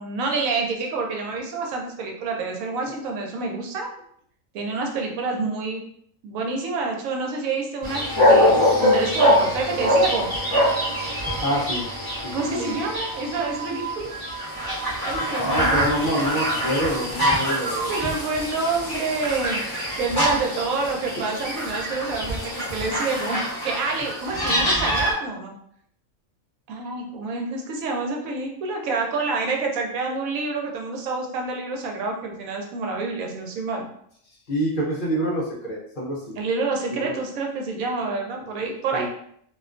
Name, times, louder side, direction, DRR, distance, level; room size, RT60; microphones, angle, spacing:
voice 1, 0.0-3.9 4.5-5.8 6.2-10.3 12.3-14.1 15.0-16.6 17.9-25.5 26.7-33.9 36.3-39.1, right 3 dB, 75° right, 1 dB, 1.0 m, -28 dB
sound 1, 7.8-25.1, left 1 dB, 20° left, 0.7 m, -24 dB
sound 2, 10.0-18.2, right 5 dB, 25° right, 0.7 m, -36 dB
voice 2, 11.4-11.8 12.2-12.7 15.2-17.9 34.5-36.4 36.9-37.2 38.9-39.1, equal, 55° left, -4 dB, 0.6 m, -26 dB
2.5 x 2.2 x 2.4 m, 0.67 s
omnidirectional pair, 1.4 m